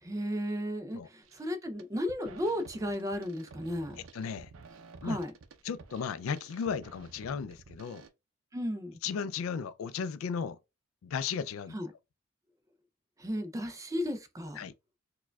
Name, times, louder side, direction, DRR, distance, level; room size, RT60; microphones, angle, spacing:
voice 1, 0.0-4.0 5.0-5.3 8.5-9.0 11.7-11.9 13.2-14.6, equal, 15° right, 0.4 m, -34 dB
sound 1, 1.2-1.5 1.8-8.1, right 4 dB, 75° right, 0.5 m, -52 dB
voice 2, 4.1-4.5 5.0-5.2 5.6-8.1 9.0-10.6 11.0-11.7 14.6-14.7, left 6 dB, 75° left, 0.3 m, -35 dB
4.6 x 2.2 x 2.2 m
head